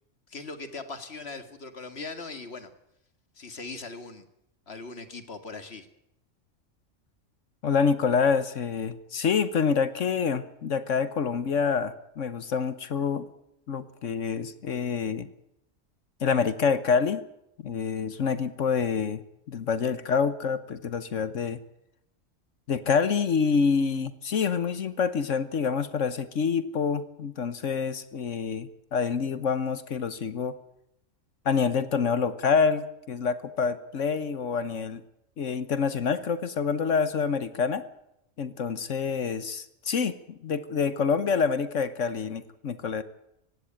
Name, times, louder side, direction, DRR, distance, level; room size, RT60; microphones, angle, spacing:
voice 1, 0.3-2.7 3.4-4.3 4.7-5.9, left 3 dB, 55° left, 9 dB, 2.2 m, -40 dB
voice 2, 7.6-13.3 13.7-15.3 16.2-17.2 17.6-19.2 19.5-21.6 22.7-30.5 31.4-35.0 35.4-37.8 38.4-43.0, left 6 dB, 70° left, 13 dB, 1.4 m, -27 dB
18.0 x 16.5 x 8.9 m, 0.82 s
omnidirectional pair, 1.3 m